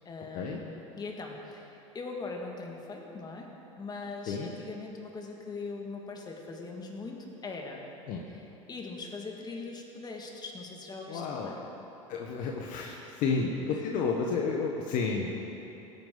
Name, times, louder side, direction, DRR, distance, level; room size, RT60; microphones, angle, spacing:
voice 1, 0.1-7.8 8.3-11.6 13.7-13.9, left 3 dB, 25° left, 1 dB, 2.1 m, -41 dB
voice 2, 11.1-11.5 12.1-15.3, left 4 dB, 55° left, 0 dB, 1.2 m, -31 dB
17.0 x 9.5 x 4.0 m, 3.0 s
hypercardioid pair, 85°, 17 cm